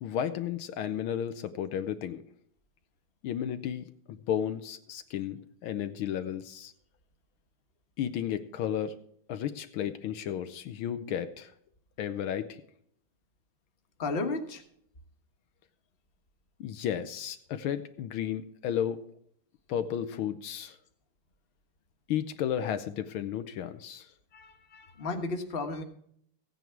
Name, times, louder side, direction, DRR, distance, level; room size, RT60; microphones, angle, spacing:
voice 1, 0.0-2.2 3.2-6.7 8.0-9.0 9.3-11.5 12.0-12.6 16.6-19.0 19.7-20.8 22.1-24.1, left 9 dB, 80° left, 10 dB, 1.5 m, -33 dB
voice 2, 14.0-14.6 24.3-25.8, left 3 dB, 30° left, 4 dB, 1.4 m, -34 dB
15.0 x 9.3 x 4.6 m, 0.66 s
omnidirectional pair, 2.4 m